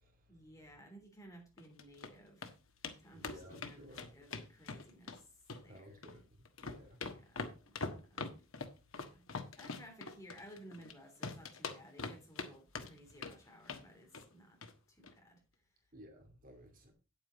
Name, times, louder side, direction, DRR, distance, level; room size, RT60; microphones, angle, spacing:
voice 1, 0.3-2.5 3.0-5.2 5.6-6.0 7.1-8.3 8.9-9.2 9.6-14.6 14.9-15.4, equal, 15° left, 3.4 m, -57 dB
sound 1, 1.6-2.1 2.4-2.5 2.8-3.0 3.2-5.2 5.5-6.2 6.5-10.9 11.2-12.5 12.8-13.4 13.7-13.9 14.1-14.3 14.6-14.7 15.0-15.1, left 4 dB, 75° left, 1.4 m, -43 dB
voice 2, 3.1-4.1 5.7-7.0 15.9-16.9, equal, 40° right, 2.5 m, -55 dB
9.2 x 8.8 x 4.1 m
head